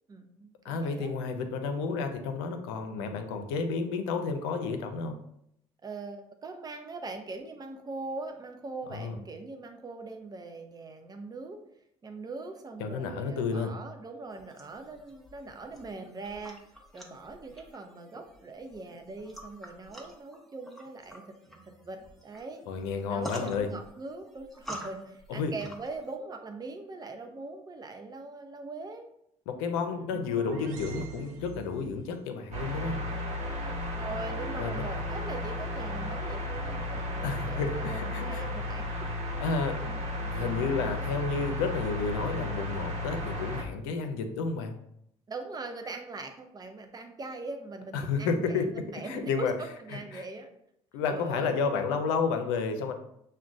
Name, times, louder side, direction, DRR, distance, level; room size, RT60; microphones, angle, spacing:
voice 1, 0.1-1.1 3.0-3.1 5.8-11.6 12.0-16.6 16.9-22.6 23.1-29.1 29.9-30.3 34.0-38.9 43.2-43.4 45.3-50.5 51.1-51.6, right 3 dB, 30° right, 5 dB, 0.7 m, -41 dB
voice 2, 0.6-5.2 8.9-9.2 12.8-13.7 22.7-23.7 25.3-25.5 29.5-33.0 34.6-34.9 37.2-38.4 39.4-44.7 47.9-48.7 49.1-49.5 50.1-50.2 50.9-52.9, left 5 dB, 90° left, 6 dB, 0.5 m, -31 dB
sound 1, 14.3-26.1, equal, ahead, 0.8 m, -48 dB
sound 2, 29.9-32.1, right 7 dB, 75° right, 0.5 m, -45 dB
sound 3, 32.5-43.6, left 1 dB, 55° right, 1.0 m, -34 dB
5.9 x 2.1 x 2.5 m, 0.75 s
supercardioid pair, 70°, 14 cm